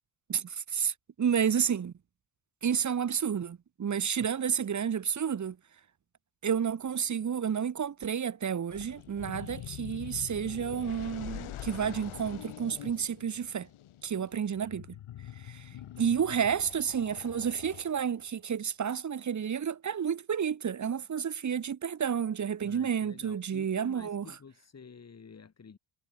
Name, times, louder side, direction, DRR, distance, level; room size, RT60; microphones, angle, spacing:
voice 1, 0.3-1.9 2.6-5.6 6.4-13.7 14.0-14.9 15.4-15.7 16.0-24.2, right 7 dB, 35° right, 1.5 m, -31 dB
sound 1, 8.7-18.2, left 12 dB, 80° left, 3.0 m, -44 dB
voice 2, 14.2-14.5 15.7-16.1 22.6-25.8, left 5 dB, 30° left, 6.5 m, -51 dB
wide cardioid pair, 170°, 49 cm